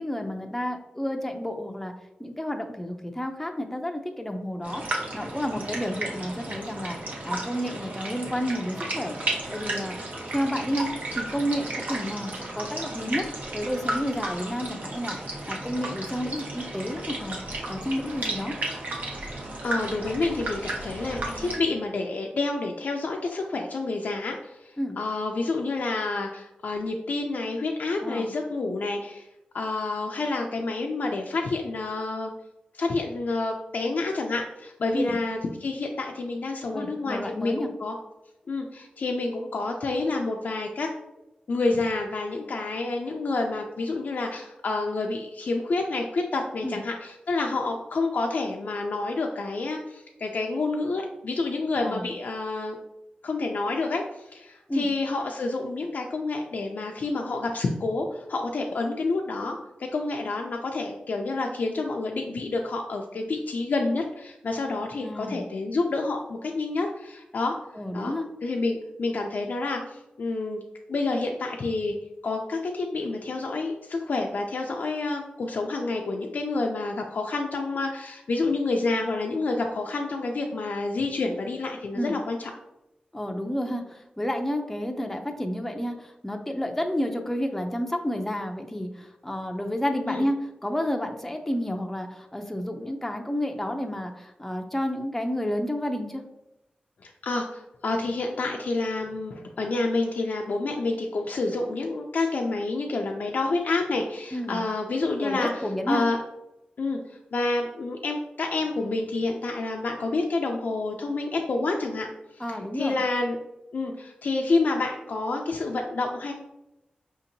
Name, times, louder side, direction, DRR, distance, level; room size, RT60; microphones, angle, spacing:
voice 1, 0.0-1.9 2.2-4.8 5.1-7.0 7.2-10.0 10.3-10.9 11.2-13.2 13.5-15.2 15.5-17.4 17.7-18.5 24.8-25.0 28.0-28.3 34.9-35.2 36.7-37.7 46.6-46.8 51.8-52.1 54.7-54.9 65.0-65.4 67.8-68.3 82.0-82.2 83.1-90.4 90.6-96.2 104.3-104.6 105.2-106.0 112.4-113.0, equal, 10° left, 3 dB, 0.5 m, -30 dB
sound 1, 4.6-21.6, right 2 dB, 60° right, 0.9 m, -34 dB
voice 2, 19.3-29.3 29.5-32.3 32.7-37.9 38.5-40.9 41.5-52.8 53.2-67.5 67.9-68.1 68.4-70.6 70.9-71.9 72.2-82.5 90.1-90.3 97.0-106.2 106.8-107.0 107.3-112.1 112.3-113.4 113.7-116.3, left 3 dB, 65° left, 1 dB, 0.4 m, -28 dB
5.0 x 2.8 x 2.6 m, 0.89 s
cardioid pair, 65°, 3 cm